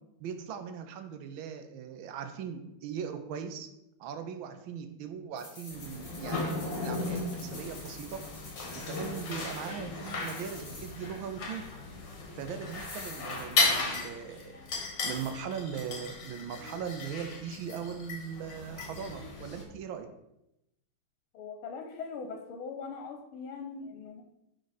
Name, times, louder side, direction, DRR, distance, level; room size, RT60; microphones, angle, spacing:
voice 1, 0.2-3.7 4.0-8.2 8.7-11.6 12.4-14.6 15.0-20.1, right 7 dB, 75° right, 7 dB, 1.5 m, -39 dB
sound 1, 5.4-9.7 10.0-11.2 11.4-11.5 12.7-14.0 15.1-15.3, left 2 dB, 40° left, 2.9 m, -49 dB
sound 2, 5.7-19.6, left 3 dB, 60° left, 2.1 m, -35 dB
voice 2, 21.3-24.2, left 5 dB, 85° left, 5 dB, 1.6 m, -41 dB
10.0 x 3.9 x 4.1 m, 0.87 s
omnidirectional pair, 2.3 m